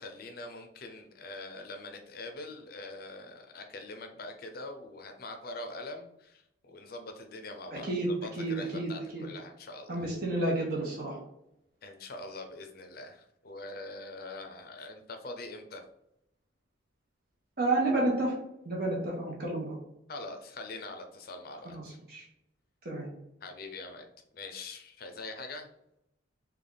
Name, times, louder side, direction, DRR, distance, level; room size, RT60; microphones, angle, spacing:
voice 1, 0.0-7.9 8.2-10.1 11.8-15.8 20.1-22.0 23.4-24.1 24.3-25.7, left 2 dB, 50° left, 5 dB, 0.5 m, -43 dB
voice 2, 7.7-8.1 8.4-9.2 9.9-11.2 17.6-18.3 18.6-19.8 21.7-21.8 22.1-22.2 22.8-23.1, right 2 dB, 50° right, -3 dB, 0.9 m, -30 dB
3.4 x 2.3 x 3.8 m, 0.81 s
head